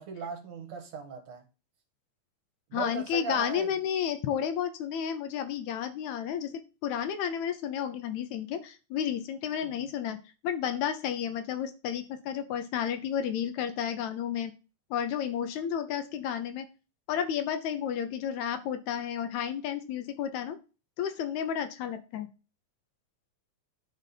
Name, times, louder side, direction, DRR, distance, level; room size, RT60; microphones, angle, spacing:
voice 1, 0.0-1.4 2.7-3.7 9.6-9.7, right 5 dB, 60° right, 2.4 m, -38 dB
voice 2, 2.7-10.2 10.4-14.5 14.9-16.7 17.1-20.6 21.0-22.3, left 8 dB, 75° left, 2.0 m, -32 dB
10.5 x 5.1 x 4.1 m
omnidirectional pair, 3.5 m